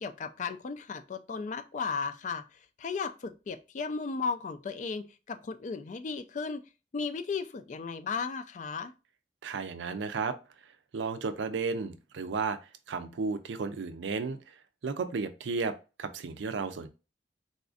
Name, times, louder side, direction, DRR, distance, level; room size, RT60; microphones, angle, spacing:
voice 1, 0.0-2.4 2.8-6.6 6.9-8.9, left 5 dB, 45° left, 0.3 m, -35 dB
voice 2, 9.4-10.4 10.9-12.6 12.9-14.6 14.8-16.9, right 4 dB, 90° right, 0.5 m, -33 dB
4.0 x 2.5 x 2.3 m
head